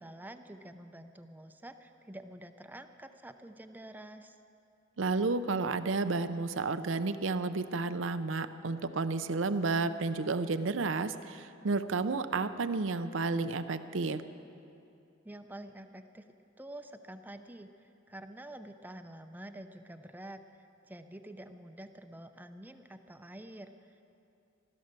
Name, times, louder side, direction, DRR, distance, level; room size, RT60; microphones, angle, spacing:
voice 1, 0.0-4.4 15.2-16.3 16.6-24.0, right 1 dB, 10° right, 8 dB, 0.5 m, -48 dB
voice 2, 5.0-14.2, right 3 dB, 75° right, 11 dB, 0.6 m, -31 dB
15.0 x 13.0 x 6.7 m, 2.6 s
head